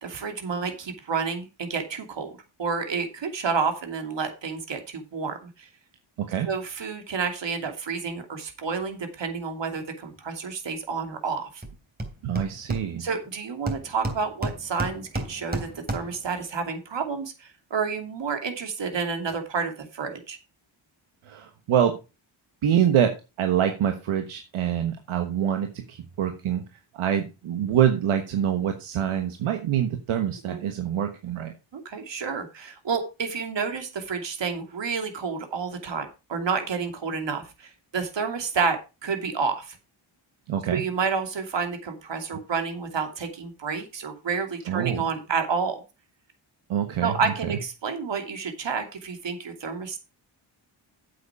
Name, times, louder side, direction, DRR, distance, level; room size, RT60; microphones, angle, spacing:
voice 1, 0.0-2.3 2.6-5.7 6.5-11.6 13.0-20.4 30.5-30.6 31.7-39.8 40.7-45.8 47.0-50.0, right 5 dB, 65° right, 6 dB, 2.8 m, -30 dB
voice 2, 6.2-6.5 12.2-13.0 21.2-22.0 22.6-26.6 26.9-31.5 40.5-40.8 44.7-45.0 46.7-47.1, right 9 dB, 85° right, 5 dB, 1.4 m, -25 dB
Hammer, 11.6-11.7 12.0-13.3 13.7-16.3, right 1 dB, 20° right, 3.1 m, -32 dB
8.6 x 8.4 x 4.7 m, 0.28 s
cardioid pair, 65°, 48 cm